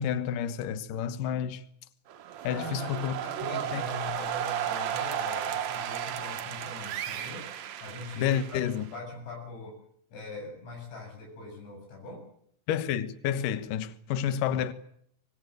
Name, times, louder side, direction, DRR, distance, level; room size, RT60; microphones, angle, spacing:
voice 1, 0.0-1.6 2.4-3.2 3.7-3.8 8.2-8.9 12.7-14.7, left 9 dB, 65° left, 2.4 m, -30 dB
sound 1, 2.1-9.0, right 9 dB, 90° right, 1.6 m, -34 dB
voice 2, 2.4-7.5 7.8-9.8 10.1-12.2, left 2 dB, 80° left, 10.0 m, -42 dB
24.0 x 23.0 x 7.9 m
omnidirectional pair, 5.1 m